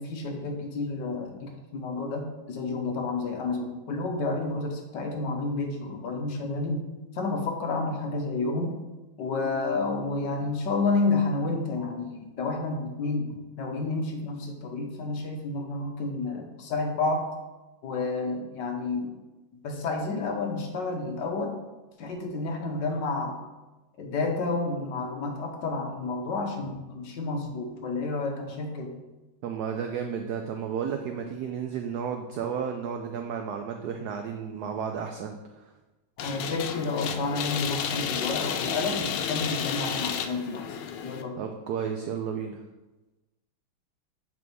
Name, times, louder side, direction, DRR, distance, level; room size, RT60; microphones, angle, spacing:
voice 1, 0.0-6.8 7.1-8.8 9.2-17.3 17.8-19.1 19.6-21.6 22.0-23.4 24.0-28.9 36.2-41.4, left 3 dB, 65° left, 2 dB, 1.4 m, -30 dB
voice 2, 29.4-35.7 41.4-42.6, right 7 dB, 90° right, 4 dB, 0.8 m, -33 dB
sound 1, 36.2-41.2, left 8 dB, 85° left, 1.4 m, -32 dB
7.6 x 3.6 x 4.6 m, 1.1 s
omnidirectional pair, 2.2 m